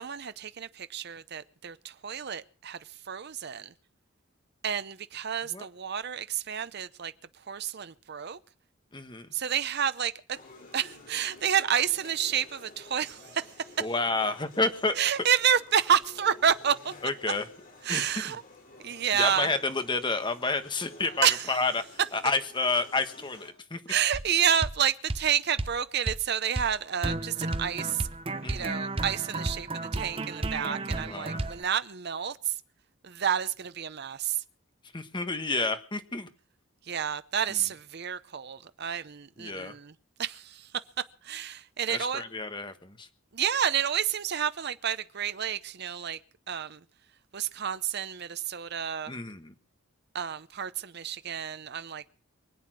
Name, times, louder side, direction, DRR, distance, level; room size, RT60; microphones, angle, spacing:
voice 1, 0.0-2.8 3.1-3.7 4.6-7.1 7.5-8.4 9.3-10.4 10.7-13.5 15.0-16.9 17.8-18.4 18.8-19.5 21.2-21.6 23.9-28.1 28.5-32.5 33.0-34.4 36.9-39.9 40.2-40.7 41.2-42.2 43.3-46.2 46.5-46.8 47.3-49.1 50.1-52.1, right 8 dB, 55° right, 0.7 m, -29 dB
voice 2, 8.9-9.3 13.8-15.0 17.0-17.4 17.9-18.3 19.1-21.8 22.1-23.8 28.4-28.7 31.0-31.4 34.9-36.3 37.5-37.6 39.4-39.7 41.9-43.1 49.1-49.5, left 3 dB, 25° left, 1.4 m, -30 dB
sound 1, 10.4-23.5, left 2 dB, 45° left, 3.7 m, -51 dB
sound 2, 24.1-24.3 24.6-24.8 25.1-25.3 25.6-25.8 26.1-26.2 26.6-26.7 27.0-31.6, right 2 dB, 30° right, 0.9 m, -33 dB
23.5 x 8.7 x 6.1 m
head